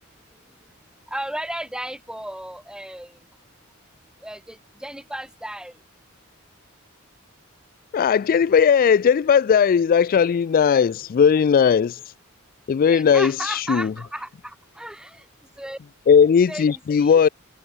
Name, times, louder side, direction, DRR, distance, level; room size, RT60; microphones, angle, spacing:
voice 1, 1.1-3.2 4.2-5.7 12.9-15.2 15.6-15.8 16.5-17.3, right 1 dB, 5° right, 2.8 m, -34 dB
voice 2, 7.9-12.0 12.7-13.9 16.1-17.3, left 7 dB, 40° left, 0.3 m, -17 dB
head